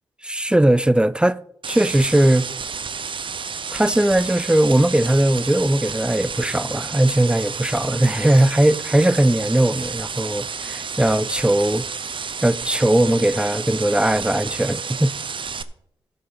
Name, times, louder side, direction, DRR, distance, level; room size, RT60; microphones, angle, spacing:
voice 1, 0.2-2.5 3.7-11.9 12.4-15.1, right 1 dB, 10° right, 0.4 m, -19 dB
sound 1, 1.6-15.6, right 5 dB, 55° right, 0.6 m, -31 dB
12.0 x 7.8 x 4.0 m
cardioid pair, 50°, 10 cm